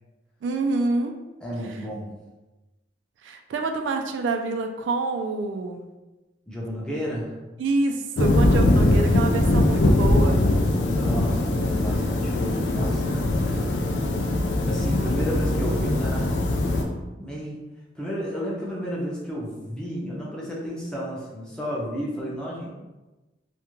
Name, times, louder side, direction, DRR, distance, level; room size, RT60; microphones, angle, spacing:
voice 1, 0.4-1.1 3.2-5.9 7.6-10.4, right 3 dB, 85° right, 5 dB, 0.3 m, -26 dB
voice 2, 1.4-2.2 6.5-7.3 10.7-13.2 14.7-16.3 17.2-17.6 17.9-22.7, equal, 5° left, -5 dB, 0.5 m, -32 dB
sound 1, 8.2-16.8, left 1 dB, 80° left, 0.4 m, -21 dB
2.4 x 2.1 x 3.0 m, 1.1 s
head